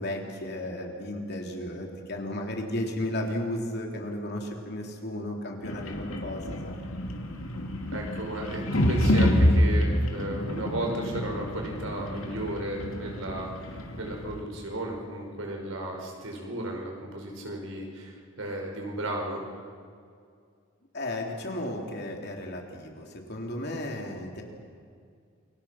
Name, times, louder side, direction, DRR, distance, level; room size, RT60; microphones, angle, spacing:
voice 1, 0.0-6.8 20.9-24.4, left 1 dB, 55° left, 1 dB, 3.4 m, -34 dB
sound 1, 5.6-14.4, equal, 90° left, 2.6 m, -28 dB
voice 2, 7.9-13.7 14.0-19.4, right 1 dB, 80° right, 1 dB, 5.2 m, -34 dB
28.5 x 23.5 x 5.9 m, 2.2 s
head